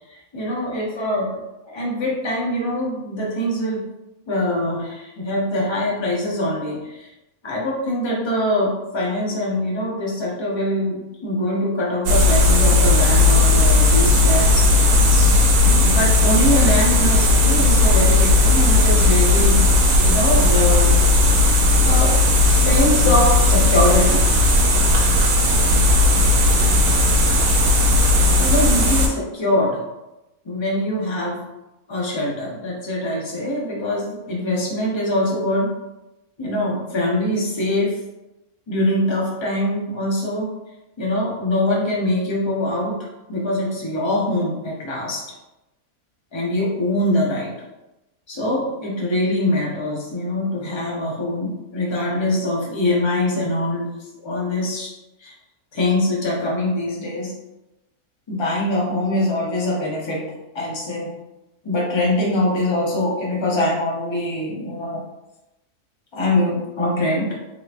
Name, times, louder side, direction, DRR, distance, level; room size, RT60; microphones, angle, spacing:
voice 1, 0.1-1.3 1.7-3.9 4.3-7.1 7.4-14.7 15.6-19.6 20.0-20.9 21.8-22.2 22.5-24.3 28.4-29.0 29.4-29.8 30.4-31.4 31.9-35.7 36.4-38.0 38.7-40.5 41.0-45.2 46.3-47.5 48.3-53.9 54.2-54.9 55.2-55.3 55.7-57.3 58.3-61.1 61.6-65.0 66.1-67.4, left 1 dB, 30° left, -4 dB, 0.6 m, -23 dB
sound 1, 12.1-29.1, left 2 dB, 80° right, 1.1 m, -15 dB
3.6 x 2.9 x 2.4 m, 0.97 s
omnidirectional pair, 1.5 m